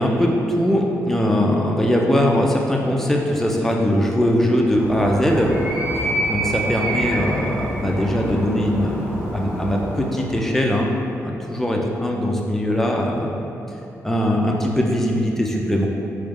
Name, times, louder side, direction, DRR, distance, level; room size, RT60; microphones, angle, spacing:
voice 1, 0.0-5.5 6.0-10.9 11.2-13.3 14.0-15.9, equal, 5° left, -1 dB, 0.5 m, -21 dB
Animal, 4.6-10.5, right 1 dB, 20° right, 1.4 m, -27 dB
3.8 x 3.2 x 3.7 m, 2.9 s
cardioid pair, 90°, 6 cm